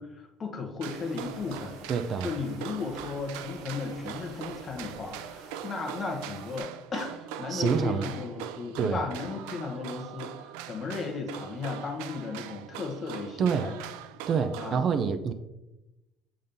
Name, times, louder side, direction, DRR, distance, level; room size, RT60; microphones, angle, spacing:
voice 1, 0.0-1.8 2.2-13.8 14.6-14.8, left 4 dB, 30° left, 3 dB, 1.4 m, -35 dB
sound 1, 0.8-14.8, right 10 dB, 90° right, 0.5 m, -42 dB
sound 2, 0.9-6.6, right 3 dB, 75° right, 1.6 m, -49 dB
voice 2, 1.9-2.3 7.5-8.1 8.8-9.1 13.4-13.7 14.3-15.3, right 6 dB, 40° right, 10 dB, 0.5 m, -27 dB
7.3 x 3.8 x 5.4 m, 0.98 s
cardioid pair, 125°, 0 cm